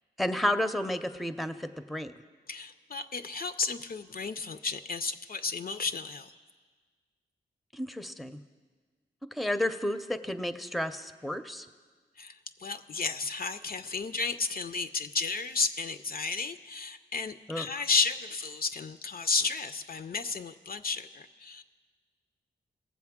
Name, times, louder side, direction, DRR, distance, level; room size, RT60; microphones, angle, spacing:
voice 1, 0.2-2.1 7.7-8.4 9.3-11.7 17.5-17.7, left 1 dB, ahead, 10 dB, 0.5 m, -31 dB
voice 2, 2.5-6.3 12.2-21.6, left 4 dB, 50° left, 10 dB, 0.4 m, -32 dB
19.0 x 7.4 x 3.6 m, 1.5 s
cardioid pair, 55°, 19 cm